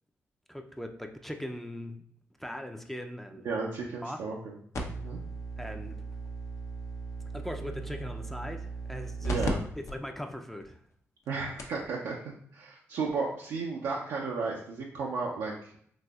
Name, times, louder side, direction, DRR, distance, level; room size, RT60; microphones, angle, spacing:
voice 1, 0.5-2.0 2.4-3.5 4.0-4.2 5.6-6.0 7.3-9.4 9.9-10.8, left 1 dB, 5° left, 5 dB, 0.4 m, -40 dB
voice 2, 3.4-4.6 4.9-5.2 9.2-9.6 11.3-15.7, right 4 dB, 80° right, -3 dB, 0.5 m, -34 dB
sound 1, 4.7-9.5 9.9-10.0 10.6-10.7 11.3-11.4 11.6-11.8 13.1-13.2, right 2 dB, 60° left, 0.6 m, -36 dB
4.0 x 2.7 x 2.3 m, 0.64 s
supercardioid pair, 50°, 6 cm